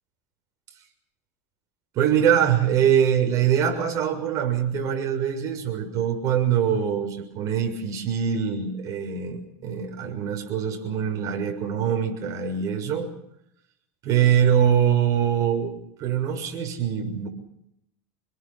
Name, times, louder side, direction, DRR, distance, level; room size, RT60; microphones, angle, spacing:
voice 1, 1.9-13.1 14.0-15.7 16.0-17.3, right 8 dB, 45° right, 4 dB, 6.6 m, -23 dB
27.0 x 21.5 x 5.8 m, 0.77 s
supercardioid pair, 125°, 8 cm